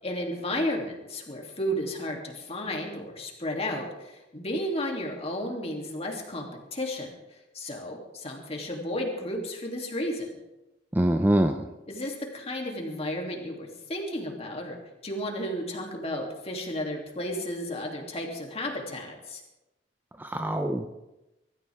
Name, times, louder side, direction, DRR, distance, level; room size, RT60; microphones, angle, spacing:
voice 1, 0.0-10.4 11.9-14.8 15.0-19.4, left 1 dB, 35° left, 0 dB, 2.9 m, -33 dB
voice 2, 10.9-11.7 20.2-20.9, right 1 dB, 10° right, 6 dB, 0.6 m, -24 dB
24.0 x 14.0 x 3.6 m, 0.99 s
head